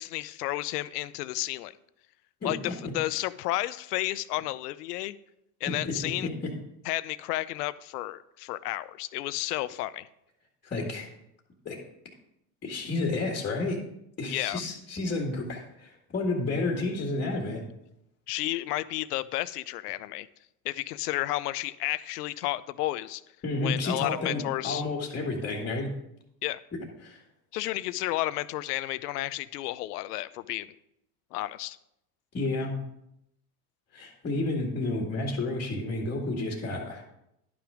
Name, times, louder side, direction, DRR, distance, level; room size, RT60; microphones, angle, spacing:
voice 1, 0.0-1.8 2.4-5.2 5.6-6.3 6.8-10.1 14.3-14.6 18.3-20.3 20.6-23.2 23.6-24.8 26.4-26.6 27.5-30.7 31.3-31.8, left 16 dB, 85° left, 16 dB, 0.6 m, -32 dB
voice 2, 5.7-6.5 10.6-11.1 11.7-11.8 12.6-13.8 14.2-17.6 23.4-25.9 27.0-27.2 32.3-32.7 33.9-37.0, left 2 dB, 20° left, 0 dB, 1.8 m, -31 dB
11.0 x 6.1 x 5.0 m, 0.81 s
supercardioid pair, 120°, 45 cm